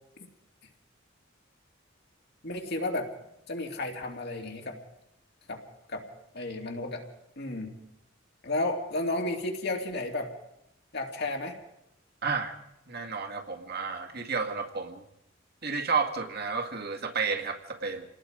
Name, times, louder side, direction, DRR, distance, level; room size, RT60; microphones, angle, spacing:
voice 1, 2.4-3.1 3.5-4.8 5.5-5.6 5.9-6.0 6.3-7.1 7.4-7.8 8.4-10.3 10.9-11.6, left 2 dB, 60° left, 2 dB, 2.7 m, -32 dB
voice 2, 12.2-12.5 12.9-15.0 15.6-18.0, right 5 dB, 55° right, 4 dB, 2.0 m, -31 dB
28.0 x 18.5 x 5.1 m, 0.84 s
head